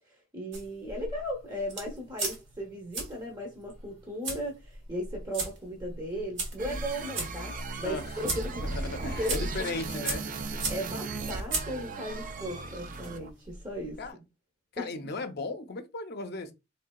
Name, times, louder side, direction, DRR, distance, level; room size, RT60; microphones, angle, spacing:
voice 1, 0.1-8.8 9.2-9.4 9.9-10.1 10.7-14.0 14.8-15.0, equal, 20° right, 0.8 m, -37 dB
sound 1, 0.5-14.1, right 3 dB, 65° right, 1.4 m, -39 dB
sound 2, 6.6-13.3, right 3 dB, 40° right, 0.4 m, -36 dB
voice 2, 8.6-10.2 14.0-14.1 14.7-16.5, left 3 dB, 55° left, 0.6 m, -36 dB
3.8 x 3.2 x 2.2 m
head